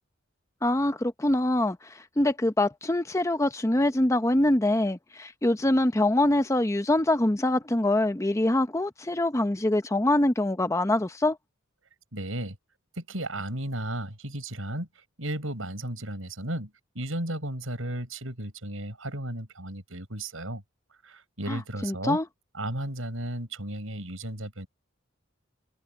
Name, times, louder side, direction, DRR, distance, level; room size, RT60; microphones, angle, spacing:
voice 1, 0.6-11.4 21.5-22.3, left 1 dB, 15° left, 0.7 m, -24 dB
voice 2, 12.1-12.6 13.0-20.6 21.0-22.2 22.5-24.7, right 1 dB, 80° right, 6.6 m, -34 dB
head